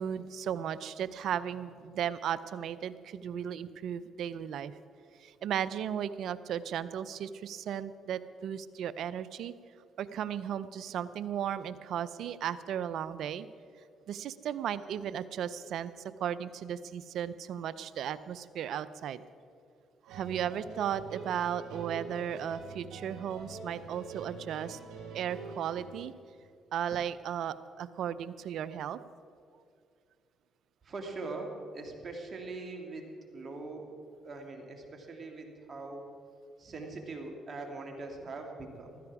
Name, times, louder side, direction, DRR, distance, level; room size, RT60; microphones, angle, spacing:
voice 1, 0.0-4.7 5.2-9.5 10.0-13.5 14.1-15.9 16.2-19.2 20.0-24.8 25.1-26.1 26.7-29.0, right 9 dB, 70° right, 15 dB, 0.5 m, -35 dB
sound 1, 20.1-26.1, right 3 dB, 85° right, 4.0 m, -45 dB
voice 2, 30.8-33.0 33.3-33.9 34.2-36.1 36.6-39.0, right 3 dB, 45° right, 2 dB, 2.5 m, -42 dB
15.0 x 13.0 x 4.8 m, 2.3 s
supercardioid pair, 65°, 0 cm